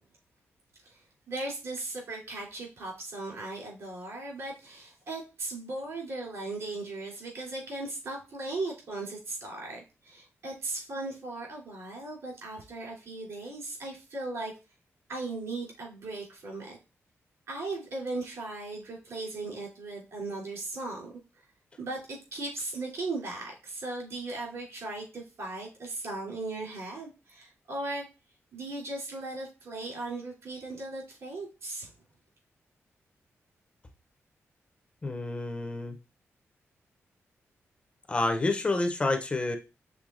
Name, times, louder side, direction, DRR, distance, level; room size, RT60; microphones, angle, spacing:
voice 1, 0.8-14.5 15.1-16.8 17.5-21.1 21.8-28.1 28.5-31.9, right 2 dB, 70° right, -4 dB, 2.9 m, -37 dB
voice 2, 35.0-36.0 38.1-39.6, left 2 dB, 25° left, 7 dB, 0.5 m, -28 dB
6.2 x 3.5 x 2.4 m, 0.30 s
wide cardioid pair, 145°, 5 cm